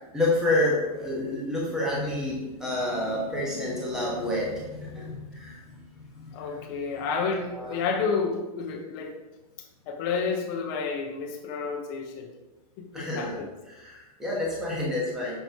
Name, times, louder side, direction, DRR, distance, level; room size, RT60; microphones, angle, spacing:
voice 1, 0.1-6.5 7.5-7.7 12.9-13.4 13.7-15.4, left 1 dB, 5° right, -6 dB, 1.1 m, -29 dB
voice 2, 6.3-9.1 9.6-12.3 12.8-13.5, left 5 dB, 35° left, 3 dB, 0.9 m, -30 dB
6.7 x 3.1 x 4.5 m, 1.1 s
supercardioid pair, 170°, 20 cm